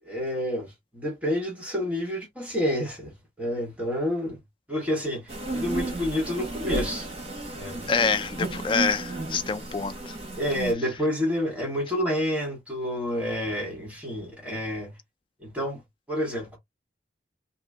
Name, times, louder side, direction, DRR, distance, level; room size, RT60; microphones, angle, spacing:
voice 1, 0.0-4.4 4.7-7.1 7.5-7.9 10.4-15.0 15.4-15.8 16.1-16.6, equal, 10° right, 1.4 m, -29 dB
sound 1, 5.3-10.7, right 2 dB, 35° right, 1.3 m, -33 dB
voice 2, 7.9-10.2, left 5 dB, 30° left, 0.3 m, -26 dB
2.8 x 2.6 x 3.4 m
head